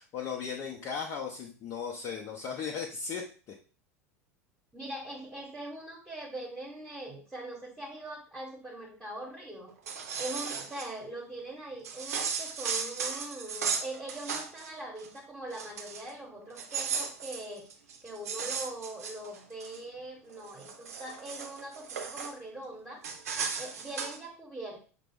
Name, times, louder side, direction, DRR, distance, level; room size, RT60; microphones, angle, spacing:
voice 1, 0.0-3.5, left 6 dB, 40° left, 0 dB, 0.6 m, -37 dB
voice 2, 4.7-9.7 10.2-17.6 18.0-23.0 23.6-24.8, right 1 dB, 10° right, -2 dB, 1.0 m, -42 dB
sound 1, 9.7-10.9 11.8-14.7 15.0-15.2 15.5-16.1 16.5-19.8 20.3-22.3 23.0-24.2, right 6 dB, 75° right, 0.6 m, -36 dB
5.8 x 2.0 x 3.5 m, 0.39 s
figure-of-eight pair, 75°, 8 cm